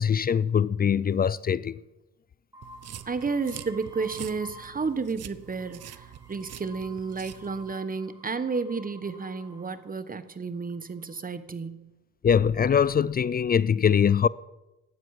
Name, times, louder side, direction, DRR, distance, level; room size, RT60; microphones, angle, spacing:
voice 1, 0.0-1.8 12.2-14.3, left 7 dB, 30° left, 0.4 m, -22 dB
sound 1, 2.5-5.1 5.4-10.0 10.7-11.3, equal, 10° right, 2.3 m, -51 dB
sound 2, 2.6-7.7, right 10 dB, 55° right, 0.9 m, -45 dB
voice 2, 3.1-11.9, right 4 dB, 30° right, 1.1 m, -32 dB
16.5 x 12.0 x 4.8 m
cardioid pair, 90°, 30 cm